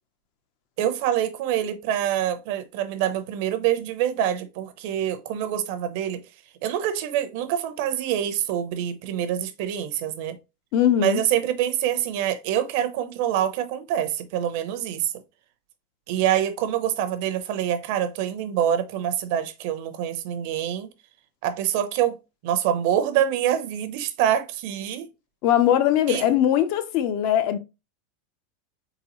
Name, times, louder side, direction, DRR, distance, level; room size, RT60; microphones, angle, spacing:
voice 1, 0.8-6.2 6.6-10.4 11.0-15.1 16.1-20.9 21.4-22.2 22.4-25.1 26.1-26.3, right 10 dB, 45° right, 0.6 m, -25 dB
voice 2, 10.7-11.2 25.4-27.6, left 10 dB, 40° left, 0.5 m, -20 dB
4.5 x 3.9 x 2.9 m
supercardioid pair, 175°, 0 cm